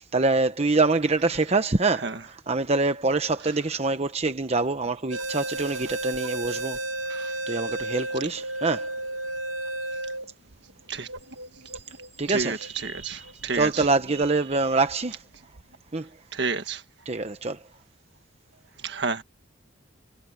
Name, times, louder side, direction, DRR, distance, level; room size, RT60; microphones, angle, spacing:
voice 1, 0.0-6.8 7.5-8.9 12.2-13.3 13.5-15.2 15.9-16.1 17.1-17.6, right 3 dB, 35° right, 0.9 m, -25 dB
sound 1, 5.1-14.3 14.9-15.0 15.5-15.8, right 2 dB, 90° right, 1.2 m, -34 dB
voice 2, 12.3-13.9 16.3-16.8 18.8-19.2, right 4 dB, 65° right, 1.7 m, -30 dB
head